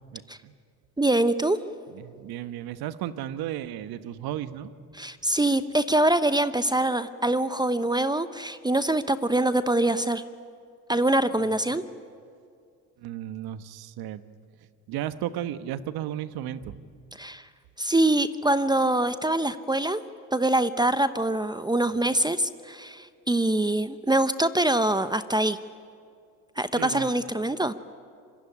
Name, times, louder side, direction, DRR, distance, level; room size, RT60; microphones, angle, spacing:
voice 1, 0.1-0.5 1.9-4.7 13.0-14.2 14.9-16.8 21.9-22.0 26.7-27.1, right 11 dB, 65° right, 12 dB, 1.3 m, -34 dB
voice 2, 1.0-1.6 4.9-10.2 10.9-11.8 17.2-17.5 17.8-20.0 20.3-25.6 26.6-27.7, right 1 dB, 10° right, 12 dB, 0.9 m, -24 dB
26.0 x 23.0 x 10.0 m, 2.3 s
hypercardioid pair, 75°, 40 cm